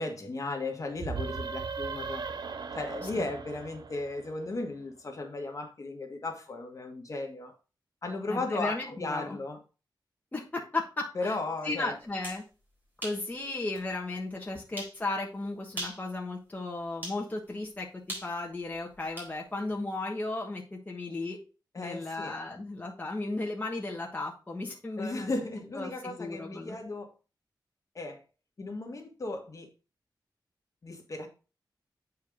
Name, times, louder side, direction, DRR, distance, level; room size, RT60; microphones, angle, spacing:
voice 1, 0.0-2.2 2.7-7.5 8.0-9.6 11.1-12.0 21.7-22.4 25.0-27.1 27.9-28.2 28.6-29.7 30.8-31.3, left 2 dB, 45° left, 3 dB, 1.5 m, -35 dB
sound 1, 1.0-4.6, right 5 dB, 65° right, 0.7 m, -38 dB
voice 2, 8.3-9.4 10.3-11.3 11.6-12.4 13.0-17.9 18.2-21.4 21.8-25.3 25.8-26.8, left 2 dB, 20° left, -1 dB, 1.3 m, -35 dB
sound 2, 12.0-12.4 13.0-13.2 13.7-13.8 14.8-15.0 15.7-16.1 17.0-17.2 18.1-19.3, right 1 dB, 25° right, 3.9 m, -39 dB
8.4 x 4.7 x 3.6 m, 0.33 s
wide cardioid pair, 125°, 8 cm